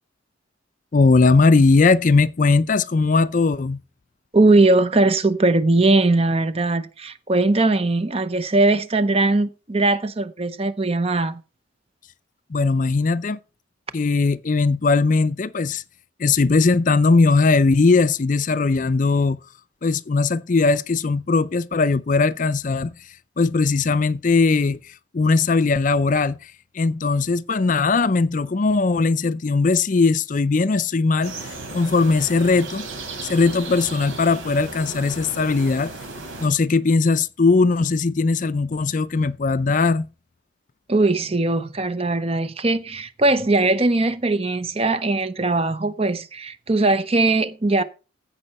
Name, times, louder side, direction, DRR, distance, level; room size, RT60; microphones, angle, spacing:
voice 1, 0.9-3.8 12.5-13.4 13.9-15.8 16.2-19.4 19.8-22.9 23.4-32.9 33.2-35.9 36.4-40.1, left 4 dB, 40° left, 0.4 m, -19 dB
voice 2, 4.3-11.4 40.9-47.8, right 2 dB, 30° right, 0.6 m, -20 dB
sound 1, 31.2-36.5, right 3 dB, 85° right, 3.6 m, -35 dB
15.5 x 5.5 x 4.1 m
head